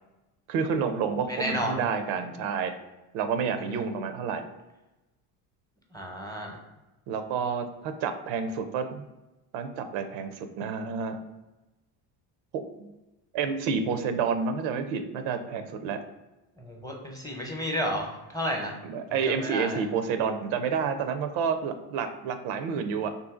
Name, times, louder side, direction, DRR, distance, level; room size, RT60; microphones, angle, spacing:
voice 1, 0.5-2.7 3.1-4.4 7.1-9.1 9.5-11.2 12.5-12.9 13.3-16.0 18.8-23.1, right 6 dB, 80° right, 8 dB, 0.5 m, -29 dB
voice 2, 1.3-1.8 3.7-3.8 5.9-6.6 16.6-18.8 19.2-19.8, equal, 10° left, 0 dB, 0.7 m, -32 dB
2.7 x 2.6 x 3.6 m, 1.0 s
supercardioid pair, 90°, 46 cm